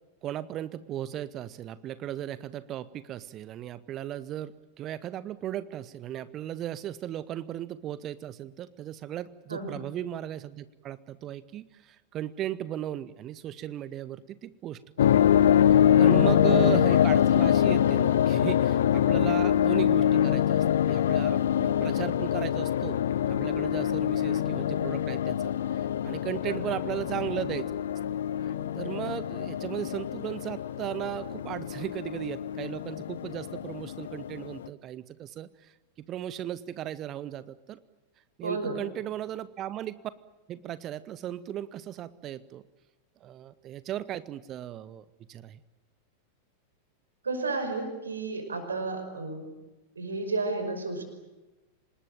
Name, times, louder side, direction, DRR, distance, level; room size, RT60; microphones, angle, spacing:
voice 1, 0.2-15.3 16.0-23.0 23.3-27.7 28.4-35.7 36.1-37.8 38.4-40.0 40.5-42.6 43.2-45.6, right 12 dB, 30° right, 17 dB, 0.8 m, -36 dB
voice 2, 9.5-9.8 16.1-16.3 26.5-26.6 38.4-38.8 47.2-49.5 50.0-51.0, right 3 dB, 75° right, 6 dB, 5.7 m, -32 dB
sound 1, 15.0-34.7, left 10 dB, 60° left, 0.8 m, -25 dB
26.0 x 20.0 x 9.2 m, 1.1 s
figure-of-eight pair, 90°, 0 cm